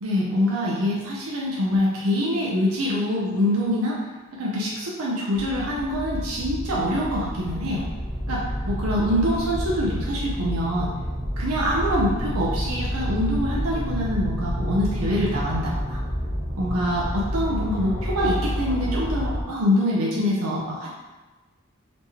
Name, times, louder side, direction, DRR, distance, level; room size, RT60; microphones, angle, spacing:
voice 1, 0.0-4.0 4.4-7.8 8.3-10.9 11.4-16.0 16.5-20.9, equal, 85° right, -4 dB, 0.6 m, -25 dB
sound 1, 5.3-19.4, equal, 5° right, 1.0 m, -29 dB
4.3 x 2.8 x 3.0 m, 1.2 s
head